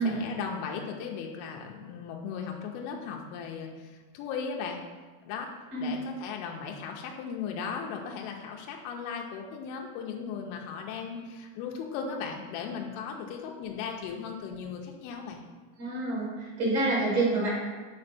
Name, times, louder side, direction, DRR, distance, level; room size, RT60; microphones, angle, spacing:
voice 1, 0.0-4.8 5.3-5.5 5.8-15.4, left 6 dB, 85° left, 1 dB, 3.1 m, -37 dB
voice 2, 15.8-17.5, right 2 dB, 70° right, -6 dB, 0.9 m, -27 dB
7.1 x 4.3 x 4.1 m, 1.3 s
omnidirectional pair, 5.5 m